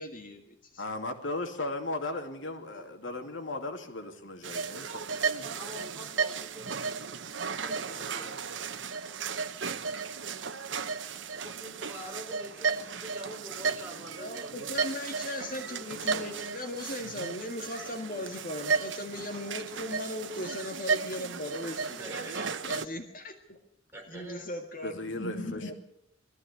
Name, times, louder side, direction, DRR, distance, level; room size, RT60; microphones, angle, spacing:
voice 1, 0.0-0.8 14.2-22.1 22.6-23.6 24.1-25.7, left 1 dB, 45° left, 4 dB, 2.0 m, -38 dB
voice 2, 0.8-5.8 16.1-16.2 24.8-25.7, left 2 dB, 80° left, 5 dB, 2.7 m, -37 dB
voice 3, 3.2-3.5 5.4-7.0 7.4-8.3 11.3-15.1 22.0-23.1 23.9-24.5, right 1 dB, 10° right, 0 dB, 4.6 m, -46 dB
sound 1, 4.4-22.8, right 5 dB, 75° right, 1.0 m, -34 dB
21.5 x 14.5 x 8.4 m, 0.78 s
head